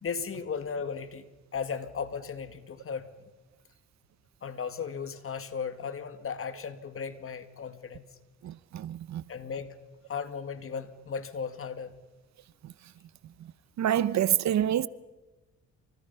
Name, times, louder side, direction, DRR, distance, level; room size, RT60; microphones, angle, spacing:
voice 1, 0.0-1.2 1.5-3.1 4.4-8.1 9.3-9.7 10.1-11.9, left 6 dB, 45° left, 2.2 m, -36 dB
voice 2, 8.4-9.2 12.6-12.7 13.8-14.9, right 11 dB, 65° right, 0.9 m, -27 dB
29.5 x 27.0 x 5.7 m
cardioid pair, 90°, 30 cm